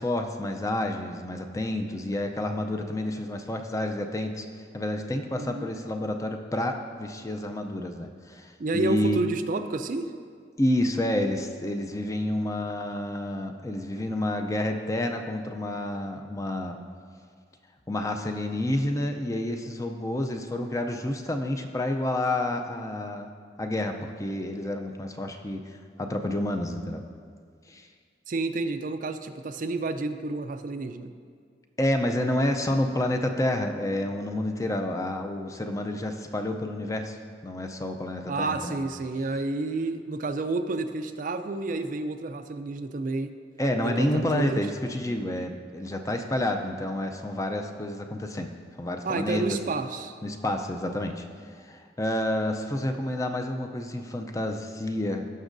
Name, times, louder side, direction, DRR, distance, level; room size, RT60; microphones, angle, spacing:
voice 1, 0.0-4.5 4.7-9.2 10.6-16.8 17.9-23.3 23.6-27.0 27.7-27.9 31.8-37.2 37.4-38.8 43.6-48.5 48.8-49.6 50.2-51.2 51.5-55.3, left 1 dB, 15° left, 4 dB, 0.5 m, -29 dB
voice 2, 5.3-5.7 8.6-10.1 28.3-31.1 38.3-43.3 43.8-44.7 49.0-50.2, right 3 dB, 45° right, 8 dB, 0.4 m, -30 dB
17.5 x 6.2 x 2.6 m, 2.1 s
head